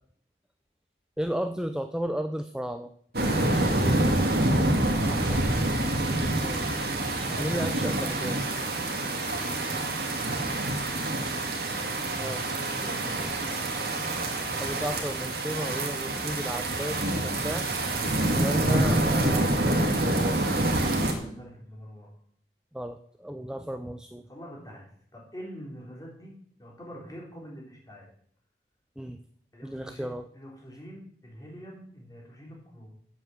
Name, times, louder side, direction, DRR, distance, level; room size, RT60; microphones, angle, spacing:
voice 1, 1.2-2.9 6.4-6.8 7.4-8.4 12.2-12.5 14.6-17.7 18.4-20.4 22.7-24.3 29.0-29.2 29.6-30.3, equal, 5° right, 7 dB, 0.4 m, -34 dB
sound 1, 3.1-21.1, right 1 dB, 60° right, 2.0 m, -27 dB
voice 2, 9.3-10.0 12.1-13.3 21.1-22.1 24.3-24.9 25.1-26.3 26.6-28.1 29.5-30.1 30.3-32.9, equal, 20° left, -2 dB, 3.5 m, -45 dB
8.2 x 7.5 x 7.7 m, 0.62 s
head